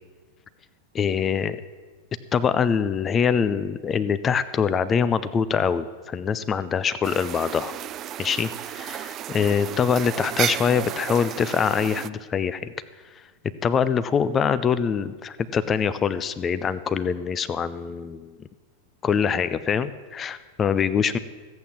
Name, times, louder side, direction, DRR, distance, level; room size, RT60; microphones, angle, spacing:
voice 1, 0.9-1.6 2.3-7.7 8.2-12.7 13.6-18.4 19.0-21.2, left 7 dB, 25° left, 14 dB, 0.5 m, -24 dB
sound 1, 7.0-12.1, right 12 dB, 30° right, 0.3 m, -33 dB
14.5 x 8.3 x 7.4 m, 1.4 s
figure-of-eight pair, 90°, 0 cm